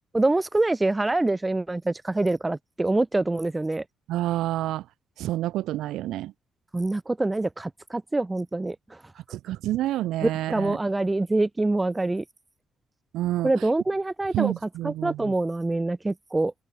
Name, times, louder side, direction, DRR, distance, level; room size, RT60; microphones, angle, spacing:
voice 1, 0.1-3.8 6.7-9.0 10.2-12.2 13.4-14.5 14.8-16.5, right 2 dB, 20° right, 0.3 m, -25 dB
voice 2, 4.1-4.8 5.2-6.3 9.3-10.8 13.1-13.5 14.3-15.3, right 14 dB, 65° right, 1.4 m, -28 dB
figure-of-eight pair, 45°, 0 cm